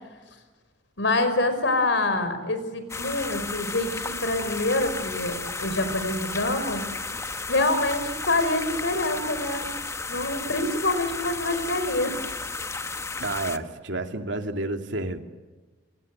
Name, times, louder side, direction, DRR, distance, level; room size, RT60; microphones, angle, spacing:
voice 1, 1.0-6.8 7.5-9.6 10.1-12.2, left 2 dB, 75° left, 10 dB, 5.4 m, -26 dB
sound 1, 2.9-13.6, left 3 dB, 15° left, 1.0 m, -33 dB
voice 2, 13.2-15.2, right 2 dB, 75° right, 5 dB, 2.7 m, -30 dB
28.5 x 26.0 x 7.9 m, 1.2 s
head